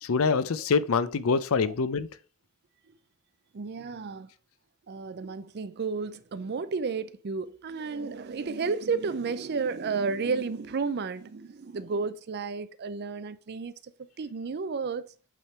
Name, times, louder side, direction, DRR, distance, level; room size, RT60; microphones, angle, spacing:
voice 1, 0.0-2.1, left 5 dB, 65° left, 0.5 m, -25 dB
voice 2, 3.5-4.3 4.9-15.1, right 4 dB, 45° right, 0.4 m, -32 dB
8.2 x 3.6 x 4.3 m
head